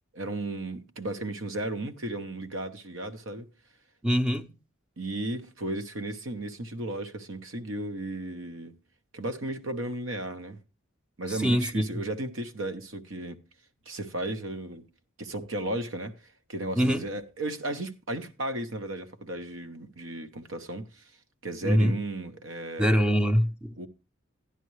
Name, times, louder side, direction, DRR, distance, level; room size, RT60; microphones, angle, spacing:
voice 1, 0.1-3.5 5.0-8.7 9.1-10.6 11.2-13.4 13.9-14.9 15.2-16.1 16.5-21.0 21.4-23.2 23.8-23.9, right 1 dB, 85° right, 1.0 m, -34 dB
voice 2, 4.0-4.5 11.3-11.9 16.8-17.0 21.6-22.0 22.8-23.7, equal, 5° right, 0.6 m, -24 dB
12.0 x 9.8 x 3.2 m
head